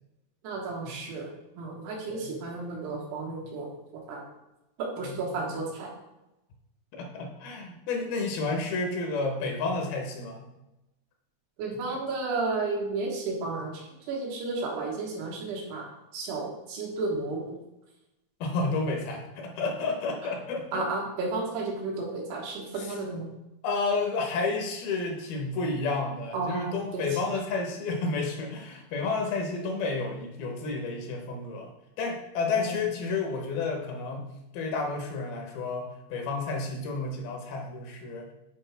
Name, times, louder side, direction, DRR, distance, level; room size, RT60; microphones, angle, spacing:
voice 1, 0.4-1.3 1.6-4.2 4.8-5.9 11.6-15.9 16.1-17.5 20.7-23.3 26.3-27.1 32.6-32.8, right 3 dB, 80° right, -2 dB, 3.6 m, -33 dB
voice 2, 6.9-10.5 11.9-12.0 18.4-20.8 22.8-23.0 23.6-31.7 32.0-34.3 34.5-38.3, left 3 dB, 75° left, 2 dB, 2.8 m, -31 dB
8.7 x 4.8 x 3.4 m, 0.94 s
omnidirectional pair, 4.6 m